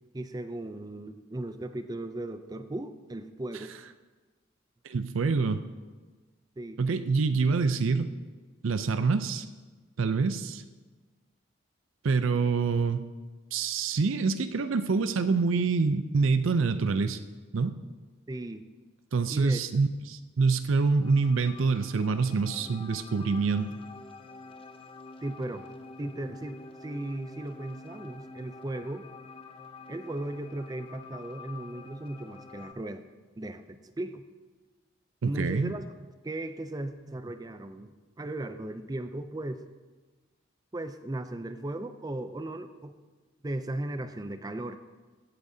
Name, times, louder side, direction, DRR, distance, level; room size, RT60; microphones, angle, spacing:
voice 1, 0.1-3.7 6.6-6.8 18.3-18.7 19.3-19.6 25.2-25.7 26.0-29.1 29.9-33.0 33.4-34.3 35.2-35.9 36.2-39.6 40.7-42.9 43.4-44.8, right 1 dB, 20° right, 10 dB, 0.4 m, -36 dB
voice 2, 4.8-5.6 6.8-8.1 8.6-9.5 10.0-10.6 12.0-13.0 13.5-17.2 17.5-17.7 19.1-23.7 35.2-35.7, right 4 dB, 80° right, 10 dB, 0.5 m, -26 dB
sound 1, 20.7-32.7, left 3 dB, 25° left, 0.6 m, -48 dB
16.0 x 8.4 x 2.7 m, 1.3 s
head